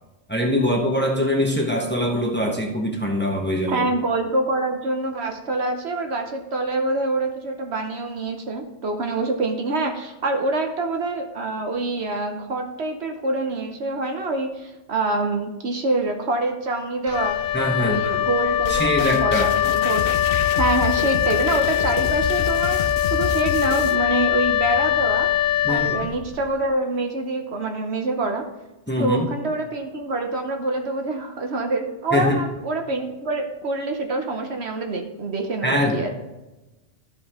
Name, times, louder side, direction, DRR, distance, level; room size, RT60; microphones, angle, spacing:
voice 1, 0.3-3.9 17.5-18.2 18.7-19.5 25.6-26.0 28.9-29.3 32.1-32.4 35.6-36.1, left 1 dB, 10° left, 0 dB, 1.0 m, -23 dB
voice 2, 3.7-17.4 17.8-20.0 20.6-22.8 23.1-25.3 25.7-28.5 29.0-36.1, right 2 dB, 60° right, 4 dB, 1.1 m, -26 dB
Wind instrument woodwind instrument, 17.1-26.5, left 12 dB, 85° left, 1.0 m, -22 dB
sound 1, 18.7-24.0, left 5 dB, 55° left, 0.7 m, -29 dB
13.0 x 5.2 x 3.6 m, 1.1 s
omnidirectional pair, 1.3 m